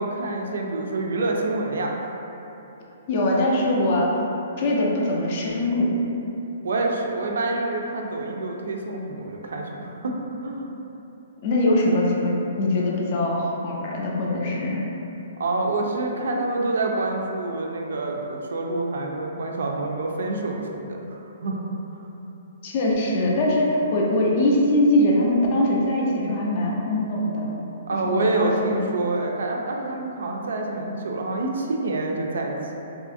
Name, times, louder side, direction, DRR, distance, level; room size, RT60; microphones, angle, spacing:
voice 1, 0.0-2.2 6.6-10.2 10.4-10.8 15.4-21.7 21.9-22.0 27.9-32.7, right 2 dB, 75° right, 1 dB, 0.3 m, -27 dB
voice 2, 3.1-4.1 4.6-5.9 11.4-14.8 22.6-27.6 28.0-28.5, left 1 dB, 30° left, -3 dB, 0.3 m, -22 dB
2.7 x 2.4 x 2.5 m, 2.9 s
hypercardioid pair, 175°, 0 cm